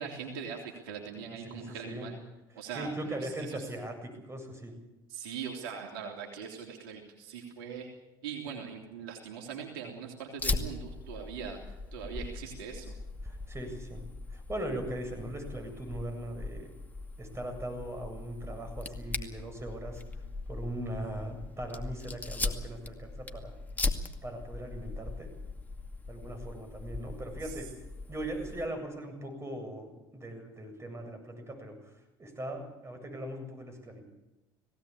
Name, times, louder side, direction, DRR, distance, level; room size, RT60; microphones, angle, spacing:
voice 1, 0.0-2.2 2.5-3.7 5.1-7.9 8.2-12.9 27.4-27.5, right 6 dB, 75° right, 1 dB, 3.3 m, -41 dB
voice 2, 1.5-2.1 2.7-4.7 13.2-14.0 14.3-16.7 17.2-20.0 20.5-23.6 24.2-25.3 26.1-27.8 28.1-31.8 32.2-34.0, right 1 dB, 20° right, 5 dB, 7.7 m, -39 dB
Fire, 10.4-28.7, left 3 dB, 15° left, 2.3 m, -39 dB
20.0 x 17.0 x 8.6 m, 0.98 s
hypercardioid pair, 70°, 12 cm